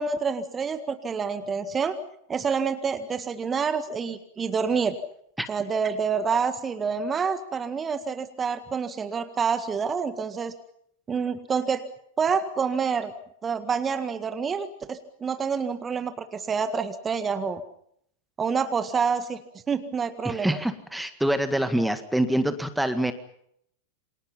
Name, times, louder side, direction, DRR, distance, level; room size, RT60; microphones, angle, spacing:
voice 1, 0.0-2.0 2.3-4.9 5.5-10.5 11.1-11.8 12.2-13.1 13.4-17.6 18.4-19.4 19.7-20.6, right 6 dB, 20° right, 10 dB, 1.8 m, -27 dB
voice 2, 20.2-23.1, right 1 dB, 5° right, 10 dB, 1.9 m, -25 dB
28.5 x 26.0 x 5.7 m, 0.71 s
figure-of-eight pair, 90°, 0 cm